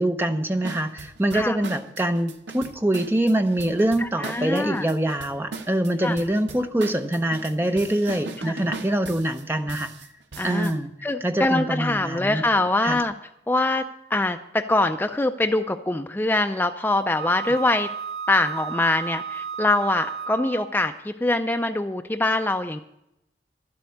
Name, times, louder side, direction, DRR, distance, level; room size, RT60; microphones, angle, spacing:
voice 1, 0.0-9.9 10.4-10.9 11.2-12.4 12.8-13.0, right 1 dB, 10° right, 6 dB, 0.7 m, -24 dB
sound 1, 0.6-10.8, right 3 dB, 80° right, 1.1 m, -39 dB
voice 2, 4.0-4.9 6.0-6.2 8.4-8.5 10.4-10.7 11.0-13.1 13.5-13.8 14.1-17.9 18.3-22.8, left 2 dB, 10° left, 6 dB, 0.4 m, -23 dB
Wind instrument woodwind instrument, 17.1-20.7, right 6 dB, 65° right, 0.7 m, -33 dB
11.5 x 7.8 x 8.4 m, 0.84 s
head